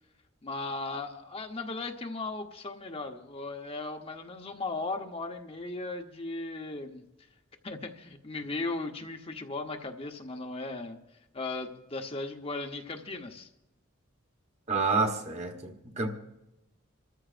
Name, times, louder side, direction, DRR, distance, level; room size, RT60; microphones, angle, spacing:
voice 1, 0.4-7.0 7.6-11.0 11.3-13.5, left 3 dB, 25° left, 0.9 m, -37 dB
voice 2, 14.7-16.1, right 3 dB, 30° right, 1.2 m, -29 dB
28.0 x 14.0 x 2.5 m
head